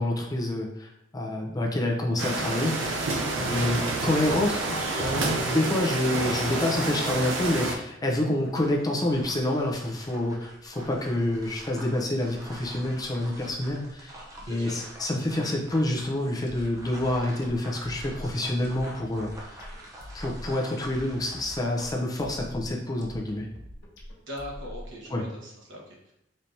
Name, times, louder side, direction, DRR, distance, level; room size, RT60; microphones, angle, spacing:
voice 1, 0.0-3.2 3.5-4.6 5.0-14.1 14.5-19.3 20.1-23.5 25.1-25.2, left 1 dB, 20° left, 0 dB, 0.5 m, -27 dB
sound 1, 2.2-7.7, right 2 dB, 85° right, 0.6 m, -28 dB
voice 2, 3.4-3.7 14.4-14.9 24.3-26.1, equal, 70° right, -3 dB, 1.2 m, -40 dB
sound 2, 8.3-22.0, equal, 15° right, 0.7 m, -46 dB
sound 3, 16.5-25.1, equal, 65° left, 0.9 m, -44 dB
4.2 x 3.3 x 2.7 m, 0.82 s
head